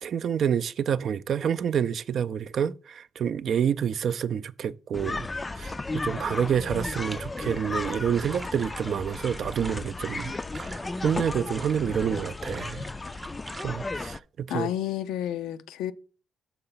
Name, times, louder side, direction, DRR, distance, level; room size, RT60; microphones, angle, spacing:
voice 1, 0.0-5.3 5.5-10.7 11.0-12.9 13.6-14.7, right 8 dB, 60° right, 0.4 m, -28 dB
sound 1, 4.9-14.2, left 3 dB, 20° left, 0.3 m, -34 dB
sound 2, 6.7-13.6, right 3 dB, 25° right, 0.7 m, -45 dB
voice 2, 14.5-15.9, left 11 dB, 90° left, 0.4 m, -30 dB
6.7 x 3.9 x 5.6 m
cardioid pair, 90°, 0 cm